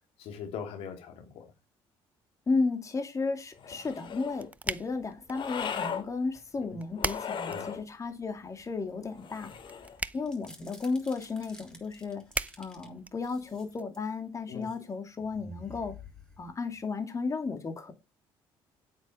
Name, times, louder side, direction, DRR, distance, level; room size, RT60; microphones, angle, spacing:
voice 1, 0.2-1.5 6.6-6.8 7.5-7.7 14.5-14.7, left 7 dB, 80° left, 3.1 m, -41 dB
voice 2, 2.5-9.5 10.1-12.2 12.6-16.0 16.4-17.9, left 4 dB, 30° left, 2.6 m, -33 dB
sound 1, 3.6-4.4 5.3-6.1 6.9-7.8 9.2-10.0, left 7 dB, 55° left, 2.6 m, -37 dB
sound 2, 3.9-13.8, right 2 dB, 15° right, 0.7 m, -42 dB
sound 3, 10.1-12.9 13.2-14.1 14.5-14.8 15.2-16.8, left 2 dB, 10° left, 5.2 m, -51 dB
9.6 x 8.6 x 5.1 m
cardioid pair, 95°, 10 cm